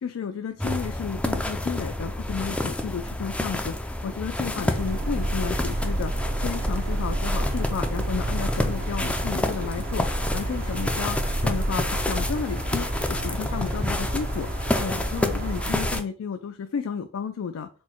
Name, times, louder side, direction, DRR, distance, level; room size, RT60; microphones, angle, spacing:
voice 1, 0.0-10.1 10.3-14.5 14.8-17.7, left 6 dB, 80° left, 8 dB, 0.4 m, -32 dB
sound 1, 0.6-16.0, left 1 dB, 5° left, 0.4 m, -29 dB
sound 2, 4.7-16.0, right 1 dB, 50° right, 0.6 m, -30 dB
4.2 x 2.2 x 4.4 m, 0.38 s
head